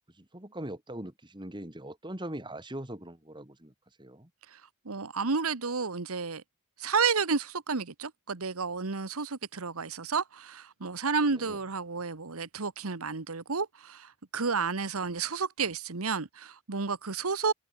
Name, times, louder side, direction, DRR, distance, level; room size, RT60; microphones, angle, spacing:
voice 1, 0.2-3.7 4.0-4.3 11.3-11.6, right 1 dB, 20° right, 2.3 m, -41 dB
voice 2, 4.5-6.4 6.8-17.5, right 5 dB, 80° right, 1.3 m, -31 dB
head